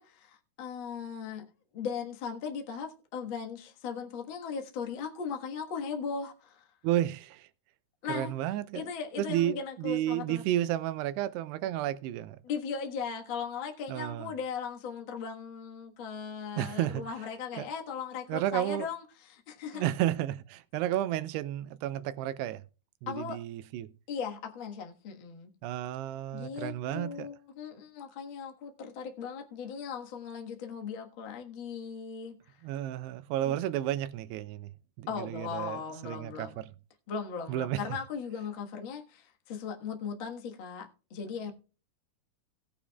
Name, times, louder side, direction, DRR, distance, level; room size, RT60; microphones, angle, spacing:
voice 1, 0.0-1.5 1.7-6.6 8.0-8.3 8.7-10.4 12.4-19.8 23.1-23.4 24.1-25.5 26.3-32.6 33.4-33.6 35.1-36.6 37.1-41.5, left 6 dB, 80° left, 1.1 m, -38 dB
voice 2, 6.8-7.5 8.1-8.9 9.2-12.4 13.9-14.3 16.6-17.0 17.6-17.7 18.3-18.9 19.7-22.6 23.0-23.9 25.6-27.3 32.6-34.7 35.0-36.7 37.5-37.8, right 13 dB, 85° right, 2.7 m, -32 dB
17.5 x 8.6 x 2.3 m
omnidirectional pair, 4.7 m